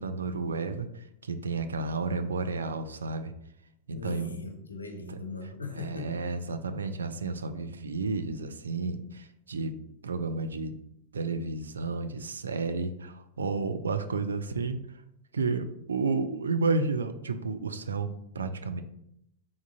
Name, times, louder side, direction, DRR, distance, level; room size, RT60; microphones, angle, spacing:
voice 1, 0.0-3.3 3.9-4.5 5.1-5.2 5.7-9.7 10.0-10.8 11.1-14.8 15.3-18.8, right 4 dB, 70° right, 9 dB, 0.3 m, -31 dB
voice 2, 3.9-6.1 6.4-6.6, left 3 dB, 80° left, 4 dB, 0.5 m, -39 dB
3.6 x 3.5 x 2.6 m, 0.76 s
figure-of-eight pair, 90°, 0 cm